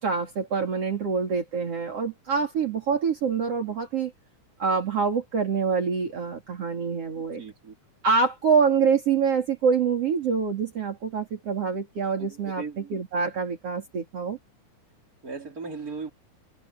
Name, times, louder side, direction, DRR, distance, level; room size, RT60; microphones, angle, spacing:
voice 1, 0.0-4.1 4.6-7.4 8.0-14.4, right 5 dB, 50° right, 3.9 m, -25 dB
voice 2, 7.1-7.7 12.2-13.0 15.2-16.1, right 4 dB, 25° right, 4.6 m, -38 dB
omnidirectional pair, 3.5 m